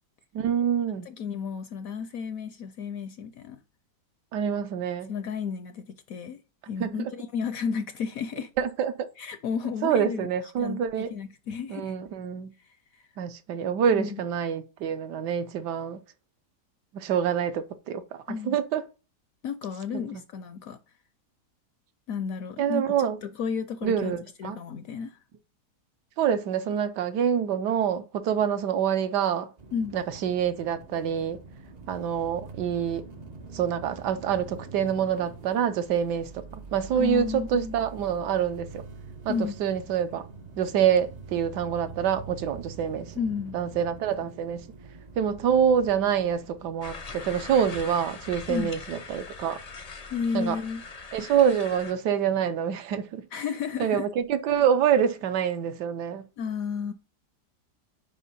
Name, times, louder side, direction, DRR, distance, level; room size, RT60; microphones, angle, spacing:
voice 1, 0.3-1.1 4.3-5.1 6.8-6.9 8.6-9.1 9.8-11.1 11.7-12.5 13.2-16.0 16.9-18.8 19.9-20.0 22.6-23.2 23.8-24.6 26.2-29.5 29.9-31.4 31.9-33.0 33.5-38.8 39.2-39.3 39.6-40.3 40.6-43.1 43.5-44.6 45.2-49.6 50.3-50.6 51.1-53.2 53.8-56.2, right 8 dB, 75° right, 1.3 m, -26 dB
voice 2, 1.1-3.6 5.1-6.4 6.7-8.5 9.2-10.3 10.6-11.9 12.6-13.1 14.0-14.2 18.3-18.6 19.4-20.8 22.1-22.9 23.2-25.2 29.7-30.0 36.9-37.8 39.3-39.6 43.2-43.6 48.5-48.8 50.1-50.8 53.3-54.1 56.4-56.9, left 6 dB, 70° left, 0.8 m, -32 dB
sound 1, 29.6-46.9, right 4 dB, 55° right, 0.4 m, -45 dB
sound 2, 46.8-51.9, left 4 dB, 50° left, 0.4 m, -41 dB
5.5 x 5.0 x 5.4 m
omnidirectional pair, 1.9 m